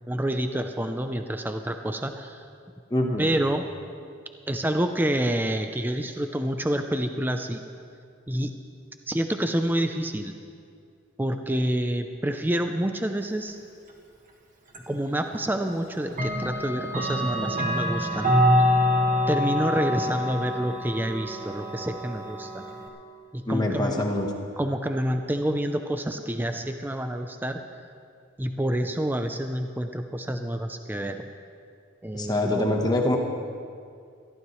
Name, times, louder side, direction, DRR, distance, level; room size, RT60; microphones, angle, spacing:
voice 1, 0.1-2.5 3.2-3.7 4.5-7.6 8.3-8.5 9.1-10.3 11.2-13.6 14.9-18.3 19.3-22.6 23.3-24.1 24.6-27.6 28.4-31.2 32.0-32.7, right 1 dB, 10° right, 6 dB, 0.5 m, -28 dB
voice 2, 2.9-3.3 17.3-17.5 23.5-24.3 32.1-33.2, left 1 dB, 20° left, 1 dB, 1.1 m, -25 dB
Clock, 14.7-14.8 16.1-22.9, left 1 dB, 40° right, 1.7 m, -25 dB
22.0 x 15.0 x 3.2 m, 2.3 s
head